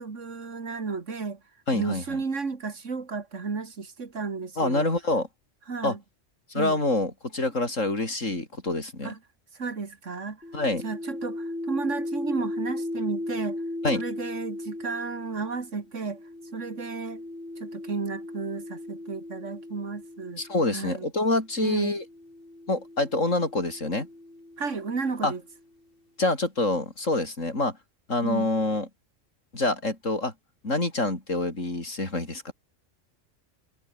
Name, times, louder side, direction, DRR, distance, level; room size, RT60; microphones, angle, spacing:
voice 1, 0.0-1.4 1.7-4.9 5.7-6.0 6.5-6.8 9.0-9.2 9.6-10.4 10.8-13.6 13.9-16.2 16.5-17.2 17.6-20.4 20.7-21.1 21.6-22.0 24.6-25.4 28.2-28.5, right 4 dB, 75° right, 2.5 m, -33 dB
voice 2, 1.7-2.2 4.6-5.3 5.8-6.0 6.5-9.1 10.5-10.9 13.8-14.0 20.4-22.0 22.7-24.1 25.2-25.3 26.2-27.8 28.1-28.9 29.5-30.3 30.6-32.5, left 2 dB, 90° left, 5.6 m, -26 dB
sound 1, 10.4-20.8 21.7-25.4, left 1 dB, 45° left, 6.4 m, -37 dB
omnidirectional pair, 1.3 m